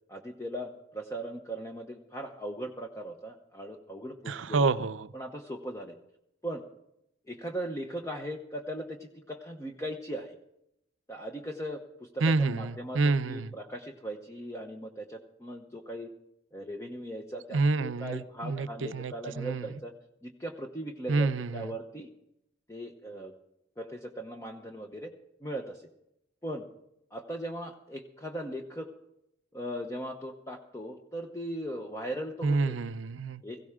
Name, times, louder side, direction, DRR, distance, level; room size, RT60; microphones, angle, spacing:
voice 1, 0.1-4.7 5.1-6.0 6.4-6.6 7.3-10.4 11.1-16.1 16.5-19.9 20.2-22.1 22.7-23.3 23.8-25.1 25.4-25.8 26.4-26.6 27.1-28.9 29.5-32.8 33.4-33.6, right 1 dB, 15° left, 2 dB, 0.9 m, -39 dB
voice 2, 4.3-5.1 12.2-13.5 17.5-19.7 21.1-21.7 32.4-33.4, right 3 dB, 85° right, 13 dB, 0.6 m, -28 dB
17.0 x 16.0 x 3.7 m, 0.80 s
head